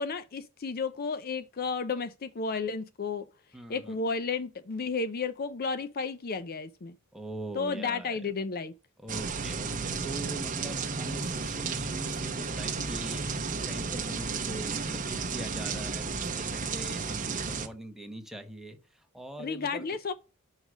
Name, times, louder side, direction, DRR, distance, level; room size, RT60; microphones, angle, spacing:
voice 1, 0.0-3.3 3.7-7.0 7.5-8.7 19.4-20.1, left 4 dB, 45° left, 0.5 m, -32 dB
voice 2, 3.5-4.0 7.1-8.3 9.0-19.8, right 1 dB, ahead, 1.1 m, -42 dB
sound 1, 9.1-17.7, right 4 dB, 35° right, 0.9 m, -33 dB
6.4 x 5.5 x 6.0 m
head